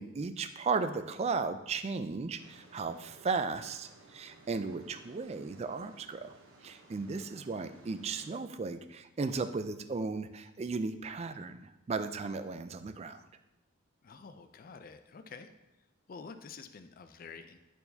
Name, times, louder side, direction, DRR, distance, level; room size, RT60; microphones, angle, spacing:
voice 1, 0.0-6.3 6.6-13.2, right 4 dB, 30° right, 10 dB, 0.3 m, -35 dB
sound 1, 2.4-8.4, right 2 dB, 70° right, 0.9 m, -58 dB
voice 2, 14.0-15.5 16.1-17.6, left 5 dB, 45° left, 8 dB, 0.4 m, -48 dB
10.5 x 4.5 x 2.7 m, 0.95 s
head